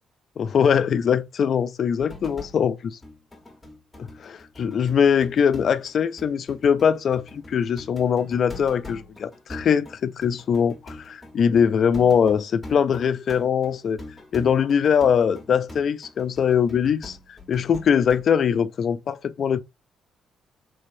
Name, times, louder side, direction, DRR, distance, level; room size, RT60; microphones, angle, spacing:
voice 1, 0.4-3.0 4.0-14.0 14.3-19.6, left 7 dB, 55° left, 0.4 m, -22 dB
sound 1, 2.0-2.7 3.0-18.2, left 2 dB, 10° left, 1.4 m, -43 dB
3.4 x 3.2 x 2.6 m
cardioid pair, 90°, 0 cm